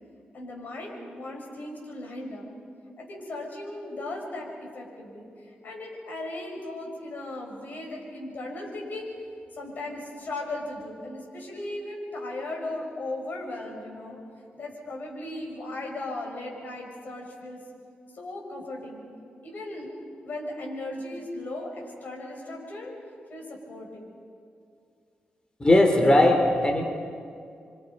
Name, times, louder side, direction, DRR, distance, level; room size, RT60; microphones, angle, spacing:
voice 1, 0.3-2.5 3.0-9.1 9.5-14.2 14.6-17.6 18.1-19.0 19.4-19.9 20.2-22.9 23.3-24.1, left 2 dB, 60° left, 0 dB, 6.0 m, -37 dB
voice 2, 25.6-26.8, left 1 dB, 25° left, 3 dB, 2.9 m, -19 dB
28.0 x 24.5 x 5.3 m, 2.4 s
cardioid pair, 85°, 3 cm